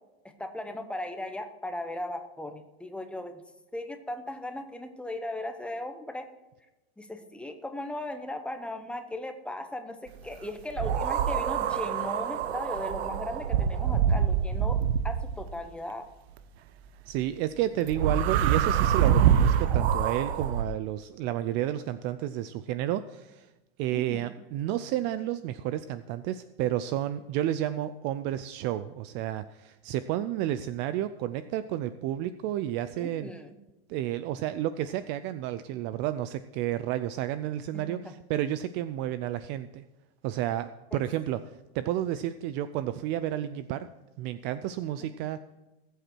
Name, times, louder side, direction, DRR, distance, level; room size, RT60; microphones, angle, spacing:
voice 1, 0.4-3.4 3.7-6.3 7.0-16.1 23.9-24.3 33.0-33.6 37.7-38.1 40.9-41.0 41.2-41.4 45.0-45.1, left 1 dB, 5° left, 7 dB, 0.9 m, -37 dB
sound 1, 10.8-15.5 17.9-20.6, right 8 dB, 75° right, 1.0 m, -25 dB
voice 2, 17.1-23.5 23.8-33.3 33.9-39.8 40.2-41.4 41.7-43.9 44.2-45.4, right 12 dB, 35° right, 13 dB, 0.4 m, -31 dB
19.0 x 8.1 x 4.5 m, 1.0 s
supercardioid pair, 145°, 32 cm